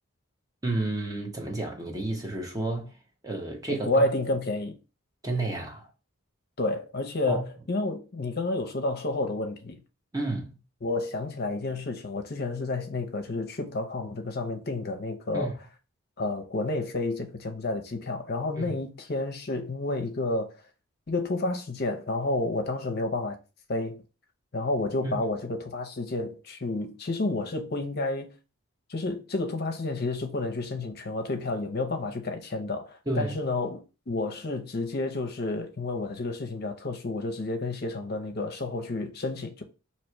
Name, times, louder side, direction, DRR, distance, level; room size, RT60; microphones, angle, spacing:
voice 1, 0.6-2.9 3.2-3.9 5.2-5.9 7.3-7.4 10.1-10.6 15.3-15.5 18.6-18.8 25.0-25.1 33.1-33.3, right 2 dB, 15° right, 0.7 m, -31 dB
voice 2, 3.7-4.8 6.6-9.8 10.8-15.5 16.2-20.5 21.1-23.4 23.7-24.0 24.5-28.4 28.9-39.6, left 2 dB, 45° left, 0.6 m, -30 dB
3.0 x 2.9 x 4.4 m
head